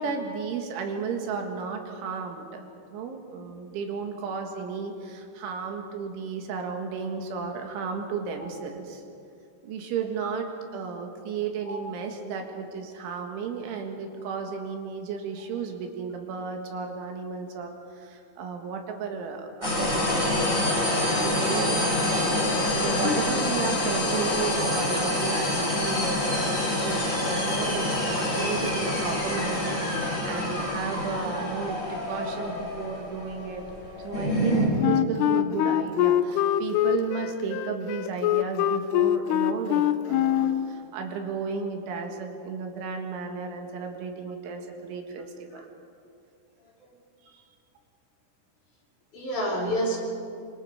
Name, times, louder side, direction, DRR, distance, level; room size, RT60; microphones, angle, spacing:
voice 1, 0.0-9.0 9.6-17.7 18.0-22.1 22.5-33.6 34.0-45.7, right 5 dB, 80° right, 3 dB, 4.3 m, -34 dB
sound 1, 19.6-34.7, left 1 dB, 25° left, 5.5 m, -27 dB
voice 2, 24.4-24.7 45.5-45.6 46.8-46.9 49.1-50.0, left 1 dB, 45° left, -2 dB, 4.5 m, -29 dB
Wind instrument woodwind instrument, 34.8-40.7, left 12 dB, 80° left, 2.3 m, -24 dB
26.5 x 24.5 x 5.1 m, 2.4 s
omnidirectional pair, 5.4 m